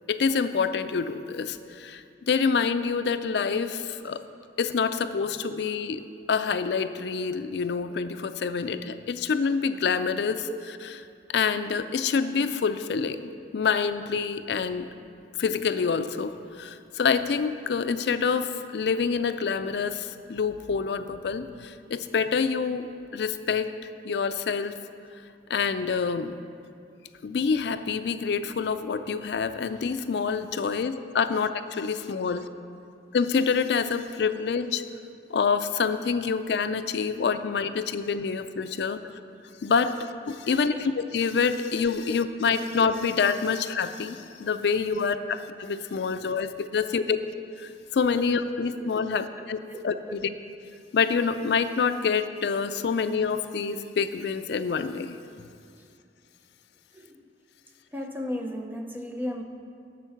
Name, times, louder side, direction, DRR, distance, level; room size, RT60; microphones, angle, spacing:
voice 1, 0.1-4.2 4.6-10.5 11.3-13.2 13.5-14.9 15.4-22.9 23.1-23.7 24.0-24.7 25.5-26.4 27.2-32.5 33.1-34.8 35.3-39.0 39.6-40.0 40.3-45.1 45.6-47.0 47.9-49.2 49.5-49.6 49.8-50.2 50.9-55.2, left 5 dB, 70° left, 10 dB, 0.4 m, -27 dB
voice 2, 48.5-49.4 49.7-49.8 50.1-50.2 55.8-55.9 56.9-57.3 57.9-59.4, left 1 dB, 10° right, 3 dB, 0.7 m, -37 dB
12.0 x 4.5 x 7.2 m, 2.5 s
head